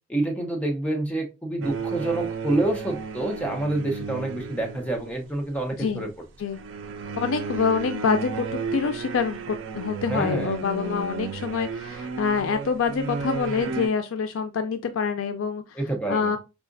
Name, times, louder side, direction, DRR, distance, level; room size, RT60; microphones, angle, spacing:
voice 1, 0.1-6.1 10.1-10.6 15.8-16.3, right 2 dB, 5° left, 2 dB, 0.8 m, -27 dB
sound 1, 1.6-5.2 6.5-13.9, right 5 dB, 70° right, 0.4 m, -33 dB
voice 2, 7.2-15.8 16.1-16.4, left 5 dB, 90° left, 8 dB, 0.4 m, -26 dB
4.8 x 2.4 x 2.5 m, 0.27 s
head